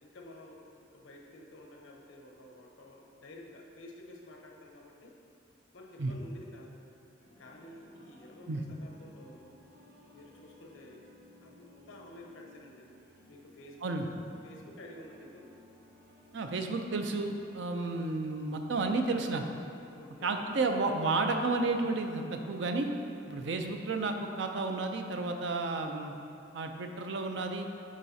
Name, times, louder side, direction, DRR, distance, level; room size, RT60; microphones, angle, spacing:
voice 1, 0.0-5.2 5.7-6.8 7.4-9.4 10.1-11.1 11.4-12.9 13.3-14.2 14.4-15.5 19.9-20.5, left 1 dB, 85° left, 0 dB, 0.8 m, -51 dB
sound 1, 7.2-24.9, left 1 dB, 50° right, 0.8 m, -59 dB
voice 2, 16.3-19.4 20.2-22.9 23.3-26.1 26.5-27.7, right 3 dB, 70° right, 5 dB, 0.5 m, -32 dB
10.0 x 4.1 x 2.7 m, 2.6 s
head